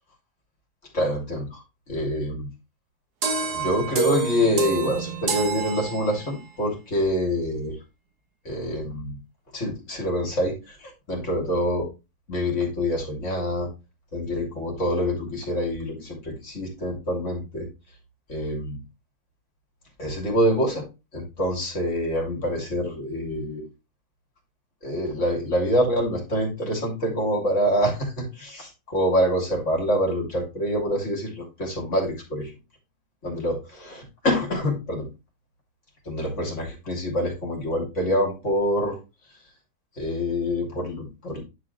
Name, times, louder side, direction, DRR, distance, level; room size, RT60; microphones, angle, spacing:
voice 1, 0.9-1.6 1.9-2.5 3.5-7.7 8.4-9.2 9.5-11.9 12.3-13.7 14.1-17.7 18.3-18.8 20.0-20.8 21.1-23.6 24.8-32.5 33.2-35.1 36.0-39.0 40.0-41.4, equal, 50° left, 0 dB, 3.3 m, -26 dB
sound 1, 3.2-6.5, right 6 dB, 80° right, 1.9 m, -28 dB
10.5 x 5.0 x 3.3 m, 0.27 s
omnidirectional pair, 1.7 m